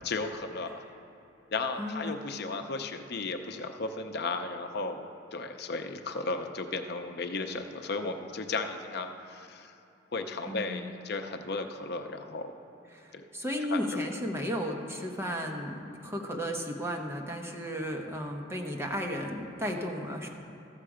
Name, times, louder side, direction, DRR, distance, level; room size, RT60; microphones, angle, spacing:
voice 1, 0.0-0.8 1.5-9.7 10.1-12.5 13.1-13.2 13.7-14.0, left 3 dB, 55° left, 6 dB, 0.7 m, -35 dB
voice 2, 1.8-2.1 10.5-10.9 12.9-20.3, equal, 15° right, 1 dB, 1.0 m, -34 dB
14.0 x 6.7 x 4.9 m, 2.8 s
head